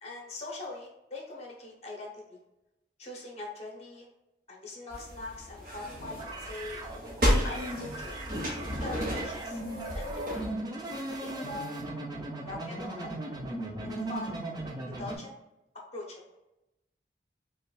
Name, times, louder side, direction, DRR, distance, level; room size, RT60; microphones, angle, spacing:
voice 1, 0.0-2.4 3.0-4.1 4.5-6.8 7.4-8.2 8.8-9.6 9.9-10.3 11.2-11.7 12.4-13.1 13.8-14.3 14.9-15.4 15.9-16.2, left 2 dB, 35° left, -1 dB, 0.9 m, -42 dB
sound 1, 4.9-10.5, equal, 50° right, 0.9 m, -32 dB
sound 2, 5.9-15.2, right 2 dB, 25° right, 0.5 m, -38 dB
5.2 x 2.3 x 2.3 m, 0.93 s
head